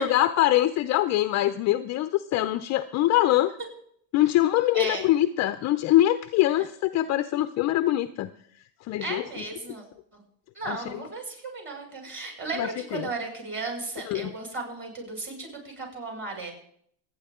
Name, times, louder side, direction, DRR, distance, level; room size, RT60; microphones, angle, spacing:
voice 1, 0.0-3.5 4.1-8.3 8.9-9.4 10.7-11.0 12.5-13.1 14.1-14.3, left 14 dB, 35° left, 12 dB, 0.5 m, -24 dB
voice 2, 4.7-5.0 9.0-9.8 10.5-16.5, right 3 dB, 25° right, 0 dB, 5.7 m, -35 dB
27.0 x 9.3 x 3.6 m, 0.65 s
supercardioid pair, 135°, 50 cm